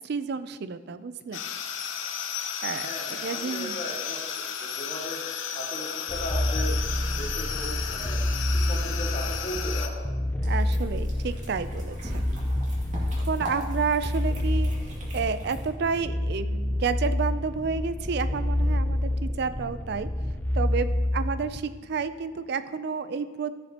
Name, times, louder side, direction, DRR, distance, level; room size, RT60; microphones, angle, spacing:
voice 1, 0.0-1.4 2.6-3.8 10.4-12.2 13.3-14.7 15.1-20.1 20.5-23.5, right 5 dB, 60° right, 13 dB, 0.4 m, -30 dB
sound 1, 1.3-9.9, left 8 dB, 85° left, 0.8 m, -34 dB
voice 2, 2.8-5.2 5.5-6.8 7.2-8.3 8.5-10.1, left 1 dB, 40° left, -3 dB, 1.9 m, -37 dB
sound 2, 6.1-21.6, left 1 dB, 10° left, 0.4 m, -28 dB
sound 3, 10.4-15.7, right 1 dB, 40° right, 2.2 m, -40 dB
15.0 x 6.4 x 2.9 m, 1.5 s
head